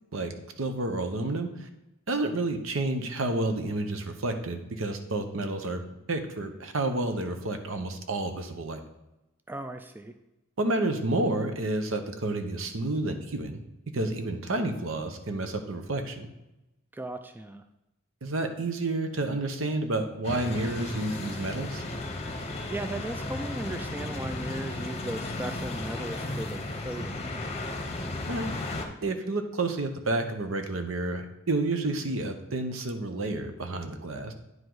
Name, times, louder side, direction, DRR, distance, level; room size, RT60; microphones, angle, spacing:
voice 1, 0.6-1.5 2.1-5.8 6.1-8.8 10.6-13.6 13.9-16.3 18.2-21.8 28.3-28.5 29.0-34.3, right 2 dB, 70° right, 7 dB, 0.9 m, -30 dB
voice 2, 9.5-10.1 16.9-17.6 22.7-27.4, right 1 dB, 10° right, 8 dB, 0.3 m, -37 dB
sound 1, 20.2-28.9, left 2 dB, 30° left, 0.8 m, -35 dB
9.4 x 4.9 x 3.9 m, 0.94 s
head